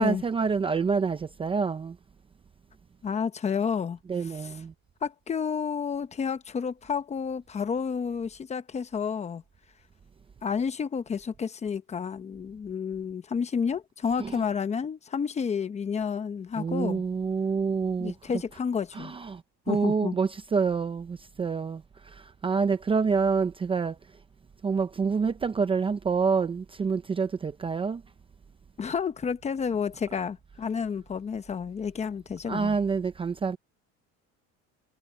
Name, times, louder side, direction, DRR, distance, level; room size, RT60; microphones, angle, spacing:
voice 1, 0.0-2.0 4.1-4.7 14.2-14.4 16.6-18.1 18.9-19.4 19.7-24.0 24.6-28.0 32.5-33.6, right 5 dB, 15° right, 0.6 m, -27 dB
voice 2, 3.0-4.5 5.0-9.4 10.4-17.0 18.0-19.1 19.7-20.2 28.8-32.8, left 6 dB, 20° left, 0.9 m, -30 dB
cardioid pair, 165°, 31 cm